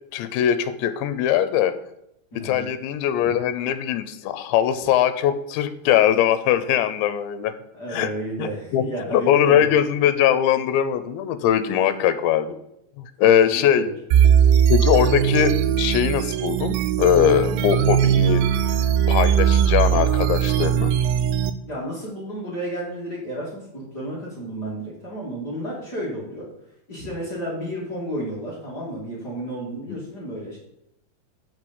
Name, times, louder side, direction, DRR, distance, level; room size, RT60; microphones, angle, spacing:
voice 1, 0.1-1.8 2.4-7.5 7.9-8.1 8.4-8.8 9.1-12.6 13.0-13.9 14.7-18.4 19.1-20.9 29.9-30.1, left 10 dB, 85° left, 12 dB, 3.0 m, -21 dB
voice 2, 2.3-2.7 3.2-3.3 7.7-9.7 13.4-13.9 21.7-26.5 26.9-30.6, right 1 dB, 30° left, -6 dB, 2.4 m, -32 dB
sound 1, 14.1-21.5, right 9 dB, 90° right, 3.0 m, -19 dB
7.7 x 6.6 x 7.1 m, 0.80 s
omnidirectional pair, 5.2 m